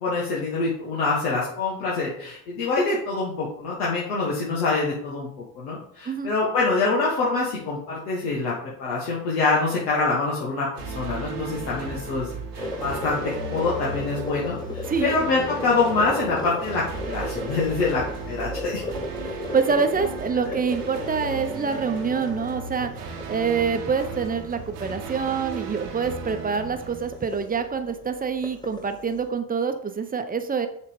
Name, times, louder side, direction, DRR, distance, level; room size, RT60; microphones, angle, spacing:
voice 1, 0.0-5.3 5.6-18.8 20.3-20.6, left 3 dB, 80° left, -5 dB, 1.5 m, -25 dB
sound 1, 10.8-27.8, right 4 dB, 80° right, 1.3 m, -36 dB
sound 2, 12.6-29.3, left 1 dB, 10° left, 1.3 m, -36 dB
voice 2, 19.2-30.7, right 5 dB, 20° right, 8 dB, 0.8 m, -26 dB
7.1 x 3.4 x 4.9 m, 0.68 s
hypercardioid pair, 60°, 46 cm